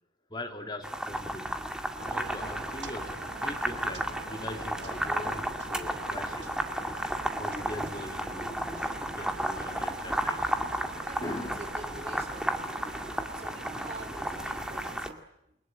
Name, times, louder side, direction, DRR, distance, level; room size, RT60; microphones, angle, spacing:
voice 1, 0.3-1.6 2.1-6.6 7.4-10.6 10.8-11.6, left 1 dB, 25° left, 5 dB, 2.8 m, -41 dB
sound 1, 0.8-15.1, equal, 5° right, 2.0 m, -33 dB
sound 2, 2.0-15.1, right 4 dB, 85° right, 1.3 m, -45 dB
voice 2, 11.0-12.7 13.4-15.6, right 2 dB, 35° right, 9 dB, 2.7 m, -46 dB
29.0 x 23.0 x 8.9 m, 0.84 s
head